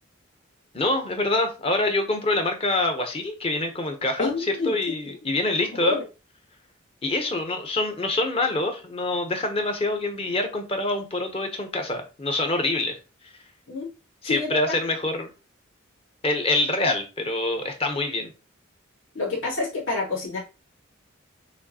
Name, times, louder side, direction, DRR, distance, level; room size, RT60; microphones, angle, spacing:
voice 1, 0.7-6.0 7.0-13.0 14.2-15.3 16.2-18.3, left 2 dB, 30° left, 4 dB, 0.9 m, -25 dB
voice 2, 4.2-4.7 5.1-5.2 5.8-6.0 13.7-13.9 14.2-14.8 19.1-20.4, left 3 dB, 65° left, -4 dB, 2.2 m, -28 dB
6.3 x 2.7 x 2.9 m, 0.31 s
head